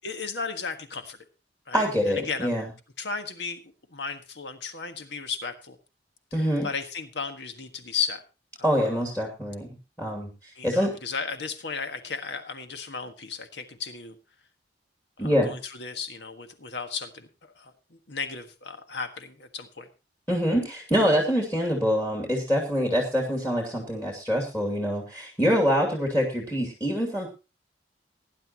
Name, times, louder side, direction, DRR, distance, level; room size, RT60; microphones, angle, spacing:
voice 1, 0.0-1.2 1.7-2.5 3.0-5.7 6.3-8.2 8.6-8.8 10.5-14.2 15.2-19.9, left 5 dB, 75° left, 7 dB, 1.6 m, -35 dB
voice 2, 1.7-2.7 6.3-6.7 8.6-10.9 15.2-15.5 20.3-27.3, equal, 10° left, 0 dB, 2.5 m, -25 dB
19.0 x 10.5 x 2.9 m, 0.29 s
head